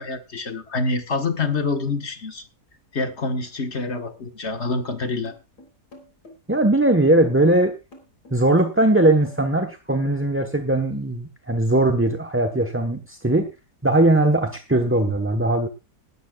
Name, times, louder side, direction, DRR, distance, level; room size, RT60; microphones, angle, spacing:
voice 1, 0.0-2.4 2.9-5.3, left 3 dB, 45° left, 7 dB, 1.8 m, -26 dB
sound 1, 5.3-10.4, left 2 dB, 90° left, 4.2 m, -46 dB
voice 2, 6.5-7.7 8.3-13.5 13.8-15.7, right 1 dB, 10° right, 5 dB, 0.9 m, -19 dB
18.5 x 13.0 x 2.4 m, 0.28 s
omnidirectional pair, 1.7 m